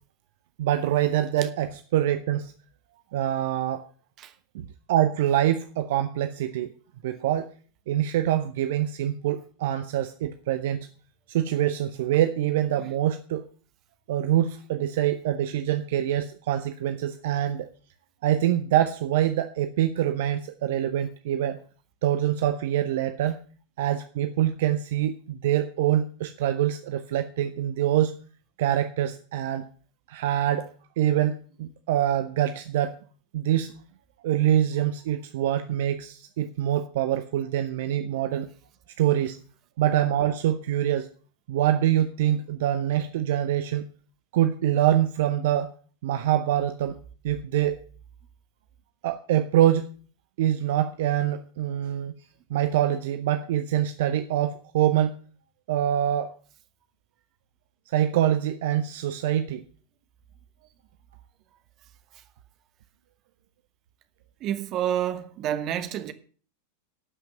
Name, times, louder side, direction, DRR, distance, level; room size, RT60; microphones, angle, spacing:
voice 1, 0.6-2.5 3.1-3.8 4.5-6.7 7.0-7.5 7.9-10.9 11.3-13.4 14.1-17.7 18.2-21.6 22.0-23.4 23.8-28.1 28.6-29.6 30.1-30.7 31.0-33.0 33.3-33.7 34.2-38.5 39.0-39.4 39.8-41.1 41.5-43.9 44.3-45.7 46.0-47.0 47.2-47.8 49.0-49.9 50.4-52.2 52.5-55.2 55.7-56.3 57.9-59.6, right 11 dB, 55° right, 0.7 m, -25 dB
voice 2, 64.4-66.1, right 10 dB, 35° right, 1.1 m, -28 dB
12.0 x 5.9 x 7.4 m
figure-of-eight pair, 90°, 0 cm